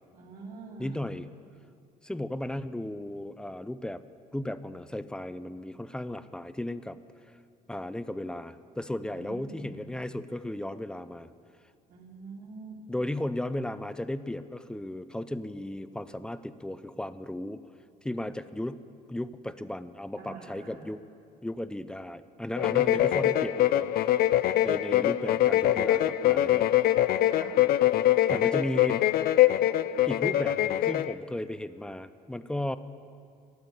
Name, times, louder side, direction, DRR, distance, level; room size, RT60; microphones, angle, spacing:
voice 1, 0.1-1.1 9.1-9.8 11.9-12.8 20.2-20.9 22.5-23.3 27.3-27.5, right 4 dB, 70° right, -3 dB, 3.3 m, -45 dB
voice 2, 0.8-1.3 2.0-4.0 4.3-7.0 7.7-11.3 12.9-17.6 18.0-18.8 19.1-21.0 21.4-23.9 24.6-26.6 28.3-29.1 30.1-32.8, left 1 dB, 5° left, 13 dB, 0.5 m, -35 dB
sound 1, 22.6-31.1, left 13 dB, 65° left, 0.4 m, -24 dB
12.5 x 8.2 x 9.7 m, 2.4 s
cardioid pair, 110°, 17 cm